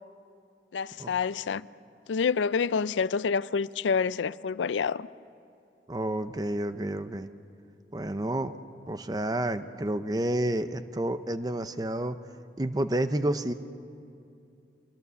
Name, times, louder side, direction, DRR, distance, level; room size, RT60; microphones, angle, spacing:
voice 1, 0.7-1.7 2.1-5.1, left 5 dB, 85° left, 0.4 m, -27 dB
voice 2, 5.9-7.3 7.9-8.5 8.9-12.2 12.6-13.5, right 1 dB, 20° right, 0.6 m, -30 dB
25.0 x 21.0 x 7.0 m
head